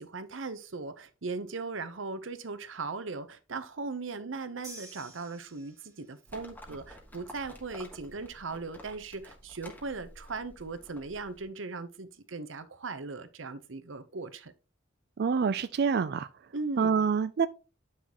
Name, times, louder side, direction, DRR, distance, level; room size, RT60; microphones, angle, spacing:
voice 1, 0.0-14.5 16.5-17.0, right 3 dB, 75° right, 0.9 m, -38 dB
sound 1, 4.6-6.2, right 2 dB, 20° right, 2.0 m, -49 dB
Livestock farm animals working animals, 6.3-11.4, equal, 10° left, 1.6 m, -51 dB
voice 2, 15.2-16.3 16.8-17.5, right 6 dB, 55° right, 0.4 m, -26 dB
9.5 x 6.0 x 3.0 m
head